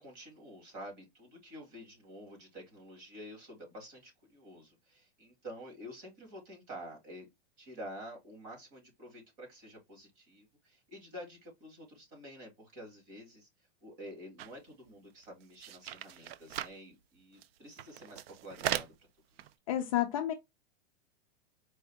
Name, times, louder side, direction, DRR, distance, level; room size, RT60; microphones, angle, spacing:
voice 1, 0.0-7.3 7.6-13.5 13.8-18.9, equal, 40° right, 2.2 m, -49 dB
sound 1, 14.4-14.6 14.9-15.0 15.2-16.8 17.4-17.5 17.7-19.0 19.4-19.5, right 11 dB, 70° right, 0.5 m, -38 dB
voice 2, 19.7-20.3, left 12 dB, 35° left, 0.4 m, -30 dB
4.5 x 2.6 x 3.4 m
supercardioid pair, 165°, 32 cm